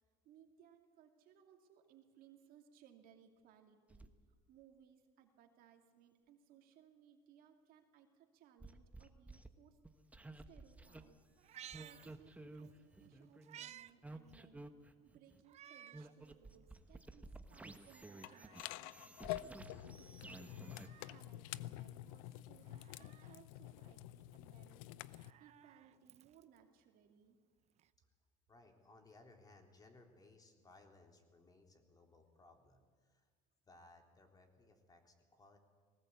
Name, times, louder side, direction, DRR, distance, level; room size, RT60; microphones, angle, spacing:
voice 1, 0.2-4.1 4.5-9.8 10.5-11.2 11.8-14.7 15.0-19.0 19.4-24.8 25.4-27.4, right 9 dB, 60° right, 4 dB, 2.6 m, -65 dB
sound 1, 3.9-4.1 8.6-9.5 9.8-11.0 11.7-15.4 15.9-20.9, right 2 dB, 10° right, 1.2 m, -54 dB
Meow, 11.4-12.7 13.1-13.9 14.3-14.4 15.4-16.1 16.6-16.7 17.7-18.7 20.3-21.3 22.6-23.4 24.9-26.6 27.8-27.9, right 11 dB, 40° right, 0.7 m, -58 dB
sound 2, 18.2-25.3, left 15 dB, 80° left, 0.6 m, -48 dB
voice 2, 28.5-33.3 33.7-35.6, left 2 dB, 20° left, 3 dB, 3.4 m, -63 dB
20.0 x 18.5 x 8.4 m, 1.6 s
supercardioid pair, 105°, 17 cm